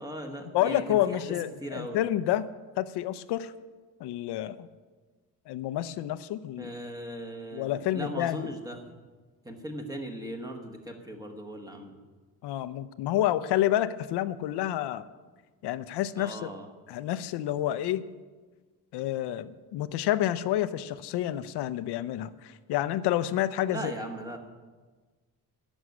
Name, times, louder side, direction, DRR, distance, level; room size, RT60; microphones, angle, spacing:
voice 1, 0.0-1.2 1.6-2.0 6.6-8.8 9.4-12.0 16.2-16.7 23.7-24.4, right 1 dB, 10° right, 3 dB, 1.3 m, -38 dB
voice 2, 0.5-2.5 2.8-3.5 4.0-4.7 5.5-6.7 7.5-8.5 12.4-15.1 15.6-16.5 16.9-18.0 18.9-23.9, left 13 dB, 90° left, 13 dB, 0.6 m, -29 dB
12.5 x 6.3 x 9.4 m, 1.4 s
cardioid pair, 160°, 39 cm